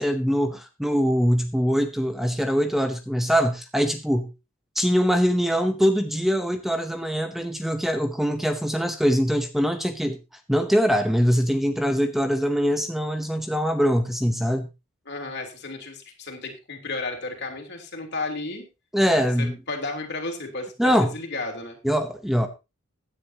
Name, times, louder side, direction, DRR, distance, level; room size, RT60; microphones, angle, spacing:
voice 1, 0.0-4.3 4.7-10.2 10.5-14.7 18.9-19.5 20.8-21.1 21.8-22.5, equal, ahead, 7 dB, 0.8 m, -23 dB
voice 2, 15.1-18.6 19.4-21.8, left 3 dB, 55° left, 3 dB, 3.4 m, -33 dB
16.0 x 10.0 x 2.9 m, 0.27 s
head